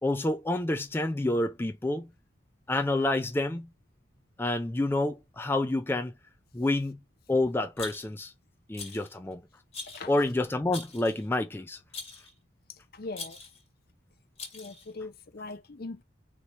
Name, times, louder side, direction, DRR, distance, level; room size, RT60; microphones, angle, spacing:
voice 1, 0.0-2.1 2.7-3.7 4.4-6.1 6.5-7.0 7.3-8.3 8.7-9.4 10.1-11.8, left 2 dB, 10° left, 0.3 m, -28 dB
Rattle, 7.8-8.3 8.7-9.1 9.7-10.1 10.7-11.3 11.9-12.3 13.1-13.6 14.4-14.9, left 4 dB, 35° left, 1.7 m, -42 dB
voice 2, 12.9-13.4 14.5-16.0, left 3 dB, 55° left, 0.6 m, -40 dB
3.0 x 2.8 x 4.3 m
head